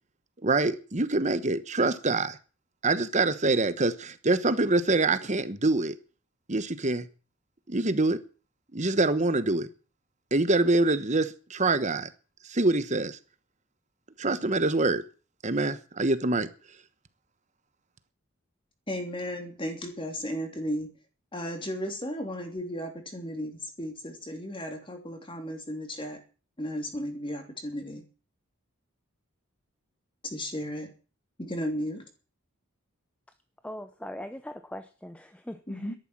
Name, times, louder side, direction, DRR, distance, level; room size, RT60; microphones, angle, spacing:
voice 1, 0.4-2.4 2.8-6.0 6.5-7.1 7.7-8.2 8.7-9.7 10.3-12.1 12.4-13.2 14.2-15.0 15.4-16.5, right 2 dB, 35° right, 13 dB, 1.1 m, -25 dB
voice 2, 18.9-20.9 21.3-26.2 26.6-28.0 30.2-30.9 31.4-32.0 35.7-35.9, equal, 25° left, 4 dB, 3.2 m, -34 dB
voice 3, 33.6-35.9, left 1 dB, 5° left, 10 dB, 0.6 m, -41 dB
13.0 x 11.0 x 7.5 m, 0.37 s
head